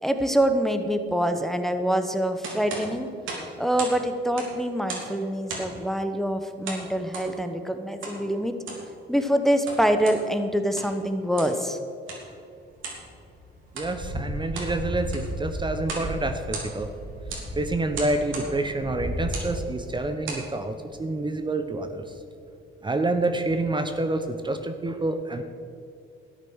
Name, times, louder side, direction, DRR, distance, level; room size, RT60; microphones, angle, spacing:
voice 1, 0.0-3.1 3.6-8.6 9.1-11.8, equal, ahead, 7 dB, 1.0 m, -25 dB
sound 1, 2.4-4.0 4.3-5.1 5.5-5.8 6.6-7.3 8.0-8.2 8.5-8.9 9.5-10.2 10.6-11.0 11.3-11.6 12.1-12.2 12.8-13.0 13.7-13.9 14.3-14.7 15.0-15.4 15.8-16.1 16.4-16.9 17.3-17.5 17.9-18.5 19.2-19.5 20.0-20.5, right 3 dB, 80° right, 3.2 m, -36 dB
sound 2, 12.8-20.1 20.5-20.6 21.0-21.1, equal, 45° right, 2.8 m, -35 dB
voice 2, 13.7-16.9 17.6-22.1 22.8-25.4, right 2 dB, 25° right, 7 dB, 0.9 m, -28 dB
13.0 x 9.0 x 6.4 m, 2.4 s
cardioid pair, 90°, 20 cm